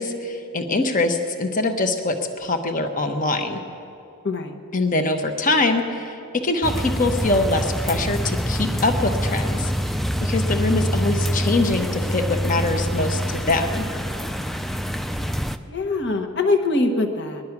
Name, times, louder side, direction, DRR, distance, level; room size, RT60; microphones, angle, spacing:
voice 1, 0.0-3.6 4.7-9.7 10.2-13.8, left 2 dB, 40° left, 6 dB, 1.1 m, -23 dB
sound 1, 6.6-15.6, equal, ahead, 0.4 m, -25 dB
voice 2, 15.7-17.4, left 2 dB, 60° left, 4 dB, 1.3 m, -23 dB
20.0 x 11.5 x 6.0 m, 2.6 s
head